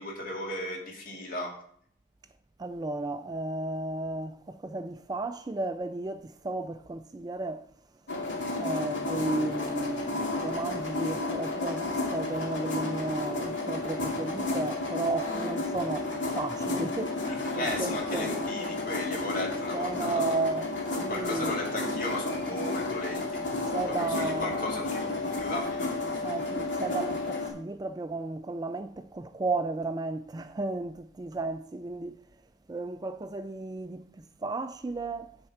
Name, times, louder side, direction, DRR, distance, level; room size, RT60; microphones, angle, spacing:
voice 1, 0.0-1.5 14.2-14.5 17.3-20.4 21.1-23.4 23.7-26.2, left 1 dB, 45° left, 2.5 m, -36 dB
voice 2, 2.6-7.7 8.5-18.3 19.7-20.7 21.0-21.5 23.7-24.7 26.2-32.2 32.7-34.0 34.4-35.4, right 3 dB, 20° right, 0.3 m, -34 dB
sound 1, 8.1-27.5, left 2 dB, 75° left, 2.5 m, -32 dB
9.8 x 4.4 x 7.1 m
head